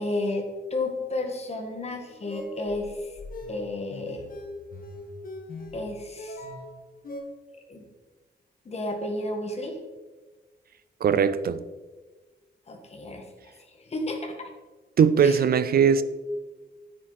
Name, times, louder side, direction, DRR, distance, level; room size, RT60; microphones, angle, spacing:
voice 1, 0.0-3.2 3.5-4.3 5.7-6.4 7.7-7.9 8.7-9.8 12.7-14.5 15.2-15.4, left 2 dB, 35° left, 1.8 m, -32 dB
sound 1, 2.1-7.2, left 1 dB, 50° left, 1.6 m, -40 dB
voice 2, 11.0-11.6 15.0-16.0, right 7 dB, 60° right, 0.5 m, -20 dB
9.4 x 9.3 x 4.2 m
wide cardioid pair, 165°, 18 cm